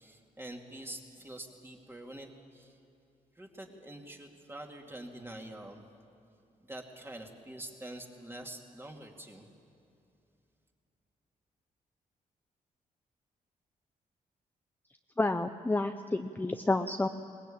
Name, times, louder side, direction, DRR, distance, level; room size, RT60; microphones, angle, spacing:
voice 1, 0.0-2.8 3.4-5.8 6.7-9.5, right 1 dB, 15° right, 2 dB, 2.5 m, -46 dB
voice 2, 15.2-17.1, left 2 dB, 15° left, 7 dB, 0.6 m, -30 dB
21.0 x 20.0 x 8.7 m, 2.7 s
cardioid pair, 95°, 15 cm